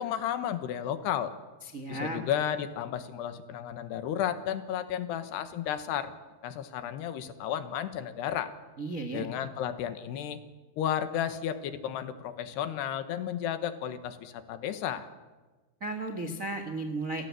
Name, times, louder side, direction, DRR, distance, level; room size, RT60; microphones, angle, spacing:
voice 1, 0.0-1.3 1.9-6.1 6.4-8.5 9.1-10.4 10.8-15.1, left 10 dB, 90° left, 10 dB, 3.5 m, -33 dB
voice 2, 1.6-2.2 8.8-9.3 15.8-17.3, right 2 dB, 85° right, 6 dB, 0.7 m, -34 dB
29.0 x 17.0 x 8.4 m, 1.3 s
omnidirectional pair, 4.7 m